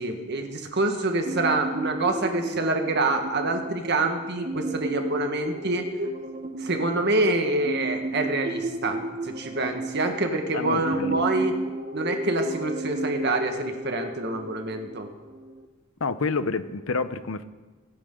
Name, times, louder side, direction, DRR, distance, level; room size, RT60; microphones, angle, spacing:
voice 1, 0.0-5.8 6.6-11.6 11.9-15.1, right 2 dB, 55° right, 5 dB, 1.6 m, -26 dB
sound 1, 1.2-15.7, right 2 dB, 40° right, 1.0 m, -33 dB
voice 2, 10.5-11.2 16.0-17.4, left 4 dB, 80° left, 13 dB, 0.8 m, -28 dB
24.5 x 9.9 x 3.8 m, 1.3 s
head